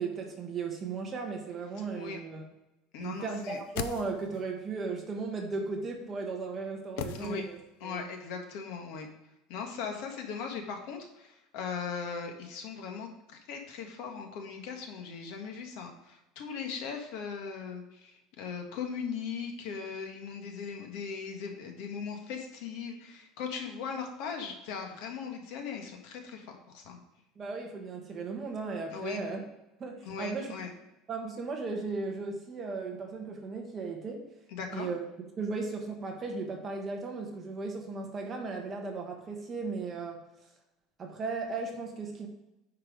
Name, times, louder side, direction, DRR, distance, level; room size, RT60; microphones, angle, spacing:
voice 1, 0.0-2.4 3.0-7.6 7.8-8.1 27.4-29.4 29.8-30.5 31.1-34.3 34.7-35.0 35.4-40.2 41.0-42.3, right 4 dB, 20° right, 1 dB, 1.3 m, -36 dB
voice 2, 2.9-3.6 7.0-7.4 7.8-9.1 9.5-27.0 28.9-29.2 30.0-30.7 34.5-34.9, left 6 dB, 60° left, 3 dB, 1.6 m, -39 dB
sound 1, 3.4-4.6 7.0-7.9 8.1-8.2, left 10 dB, 85° left, 0.6 m, -40 dB
9.9 x 4.7 x 5.0 m, 0.93 s
cardioid pair, 175°, 0 cm